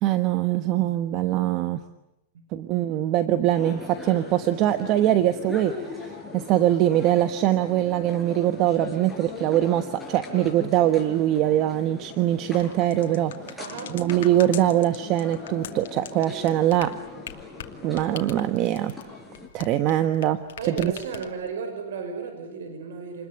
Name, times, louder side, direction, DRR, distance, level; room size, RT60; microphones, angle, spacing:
voice 1, 0.0-1.8 2.5-13.6 13.9-17.0 17.8-18.9 19.5-20.4 20.7-20.9, right 12 dB, 35° right, 10 dB, 1.2 m, -23 dB
sound 1, 3.5-19.5, left 3 dB, ahead, 5.9 m, -40 dB
sound 2, 12.5-20.2 20.5-21.5, left 11 dB, 80° left, 2.5 m, -40 dB
voice 2, 13.6-14.0 20.6-23.3, right 5 dB, 85° right, 7 dB, 5.6 m, -34 dB
28.0 x 21.5 x 9.7 m, 0.92 s
supercardioid pair, 150°, 0 cm